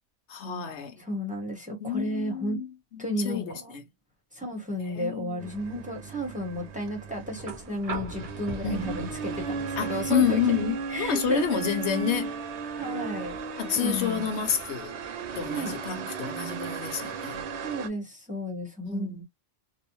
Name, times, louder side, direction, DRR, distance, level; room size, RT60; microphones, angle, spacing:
voice 1, 0.3-1.0 1.8-2.7 2.9-3.8 4.9-5.5 8.6-9.1 9.8-12.3 13.6-14.9 15.3-17.4 18.9-19.2, left 7 dB, 85° left, 1.0 m, -29 dB
voice 2, 1.0-2.6 3.0-3.8 4.3-10.6 10.9-11.6 12.8-13.4 13.8-14.3 15.5-15.7 17.6-19.1, equal, 10° right, 0.8 m, -33 dB
sound 1, 5.4-17.9, right 5 dB, 85° right, 0.9 m, -36 dB
sound 2, 7.4-15.4 16.8-16.9, right 3 dB, 40° right, 0.7 m, -44 dB
2.6 x 2.0 x 2.9 m
omnidirectional pair, 1.1 m